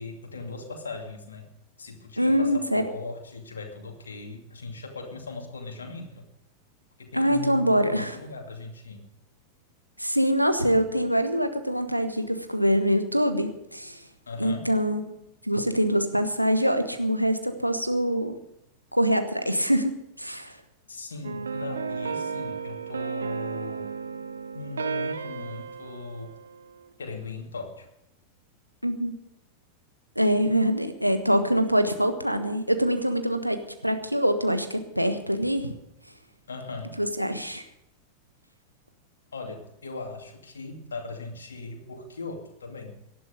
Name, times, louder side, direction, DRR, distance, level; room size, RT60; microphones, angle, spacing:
voice 1, 0.0-1.5 1.8-6.3 7.0-9.0 10.6-10.8 14.3-14.7 20.9-23.9 24.5-26.3 27.0-27.9 36.5-37.0 39.3-43.0, left 3 dB, 70° left, 3 dB, 2.4 m, -38 dB
voice 2, 2.2-2.8 7.1-8.1 10.0-14.0 14.4-15.0 15.5-18.4 18.9-20.5 28.8-29.1 30.1-35.7 37.0-37.6, equal, 90° right, 7 dB, 1.4 m, -24 dB
sound 1, 21.2-26.9, right 5 dB, 70° right, 1.0 m, -34 dB
18.0 x 11.5 x 5.2 m, 0.81 s
figure-of-eight pair, 90°, 0 cm